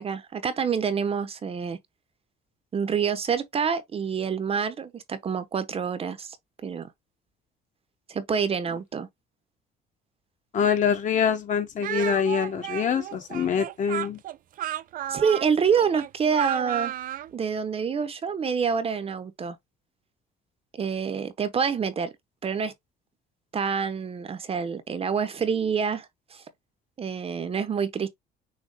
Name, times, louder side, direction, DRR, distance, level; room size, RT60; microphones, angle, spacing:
voice 1, 0.0-1.8 2.7-6.4 6.6-6.9 8.1-9.1 15.1-16.9 17.3-19.6 20.7-22.1 22.4-22.7 23.5-26.4 27.0-28.1, right 6 dB, 35° right, 0.8 m, -27 dB
voice 2, 10.5-14.2, left 7 dB, 50° left, 1.5 m, -25 dB
Speech, 11.8-17.3, right 12 dB, 55° right, 0.5 m, -33 dB
6.5 x 2.3 x 3.5 m
cardioid pair, 110°, 17 cm